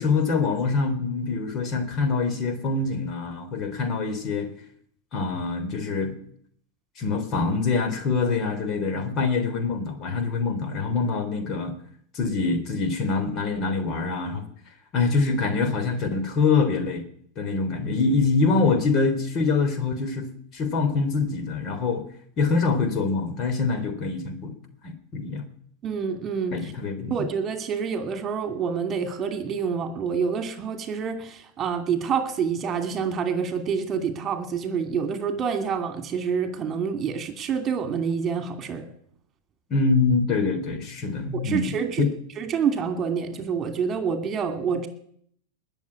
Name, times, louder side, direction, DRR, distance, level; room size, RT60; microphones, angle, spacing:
voice 1, 0.0-4.5 5.1-6.1 7.0-11.7 12.1-14.5 14.9-17.0 17.4-20.3 20.5-22.0 22.4-24.5 24.8-25.5 26.5-27.1 39.7-42.1, left 4 dB, 40° left, 8 dB, 3.1 m, -25 dB
voice 2, 25.8-26.6 27.1-38.8 41.4-42.1 42.4-44.9, right 6 dB, 30° right, 8 dB, 2.6 m, -27 dB
20.0 x 7.2 x 9.6 m, 0.64 s
hypercardioid pair, 110°, 0 cm